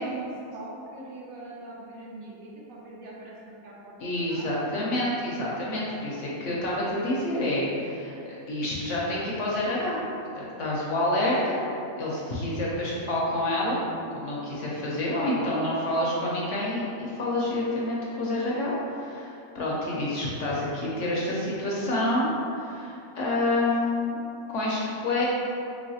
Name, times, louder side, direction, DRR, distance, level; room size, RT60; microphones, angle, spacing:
voice 1, 0.0-4.0 4.3-4.8 20.8-21.0, right 2 dB, 70° right, -4 dB, 1.1 m, -42 dB
voice 2, 4.0-10.0 10.3-11.6 12.0-13.8 14.1-22.3 22.6-24.1 24.5-25.3, left 1 dB, 65° left, -5 dB, 0.8 m, -28 dB
3.3 x 3.1 x 2.7 m, 2.6 s
omnidirectional pair, 1.5 m